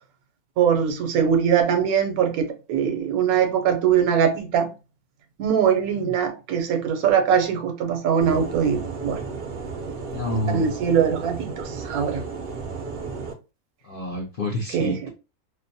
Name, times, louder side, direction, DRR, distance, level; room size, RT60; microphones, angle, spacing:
voice 1, 0.6-4.7 5.4-9.2 10.5-12.2 14.7-15.1, right 8 dB, 75° right, 1.1 m, -22 dB
sound 1, 8.2-13.3, right 4 dB, 60° right, 0.6 m, -33 dB
voice 2, 10.1-10.7 13.8-15.1, left 1 dB, 65° left, 0.5 m, -28 dB
2.6 x 2.1 x 2.6 m
omnidirectional pair, 1.6 m